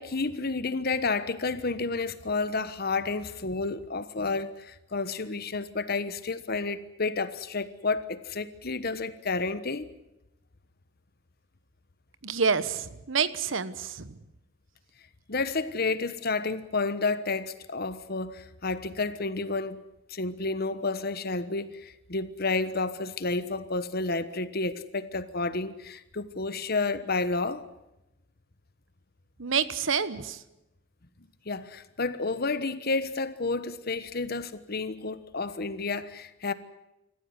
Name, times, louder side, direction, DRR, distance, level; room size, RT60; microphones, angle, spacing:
voice 1, 0.0-9.9 15.3-19.8 20.1-27.6 31.4-36.5, left 3 dB, 50° left, 1.2 m, -30 dB
voice 2, 12.2-14.2 29.4-30.4, right 6 dB, 65° right, 1.1 m, -28 dB
26.5 x 14.5 x 9.8 m
head